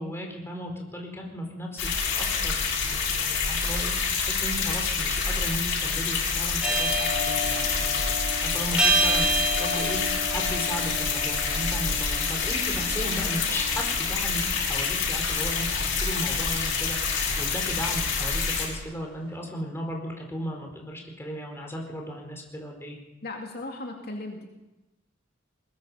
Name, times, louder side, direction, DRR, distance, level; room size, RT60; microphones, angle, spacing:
voice 1, 0.0-23.0, equal, 15° left, 1 dB, 4.6 m, -36 dB
sound 1, 1.8-18.7, left 5 dB, 70° left, 7.6 m, -27 dB
sound 2, 6.6-18.7, right 2 dB, 5° right, 4.5 m, -31 dB
voice 2, 23.2-24.5, left 2 dB, 55° left, 1 dB, 2.5 m, -36 dB
22.0 x 21.0 x 5.7 m, 0.99 s
head